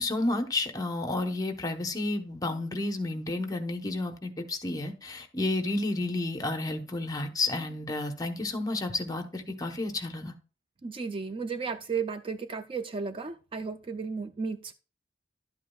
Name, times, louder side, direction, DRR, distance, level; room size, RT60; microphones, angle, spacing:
voice 1, 0.0-10.3, left 2 dB, 20° left, 7 dB, 0.9 m, -31 dB
voice 2, 10.8-14.7, right 5 dB, 30° right, 10 dB, 0.4 m, -34 dB
11.5 x 8.4 x 2.3 m, 0.35 s
head